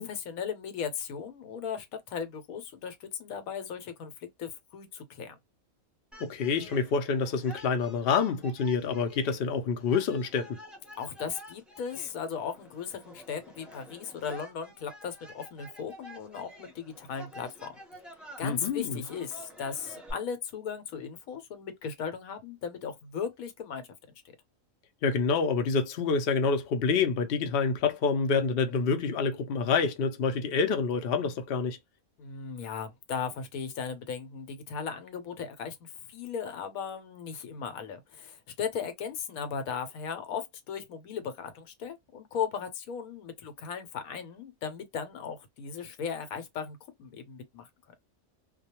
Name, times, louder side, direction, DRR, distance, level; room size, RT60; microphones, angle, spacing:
voice 1, 0.0-4.1 4.4-5.4 11.0-17.7 18.4-23.8 32.3-47.7, left 7 dB, 80° left, 1.1 m, -37 dB
sound 1, 6.1-20.1, equal, ahead, 0.5 m, -49 dB
voice 2, 6.2-10.6 18.4-19.0 25.0-31.8, left 5 dB, 60° left, 0.7 m, -27 dB
2.3 x 2.2 x 2.8 m
omnidirectional pair, 1.5 m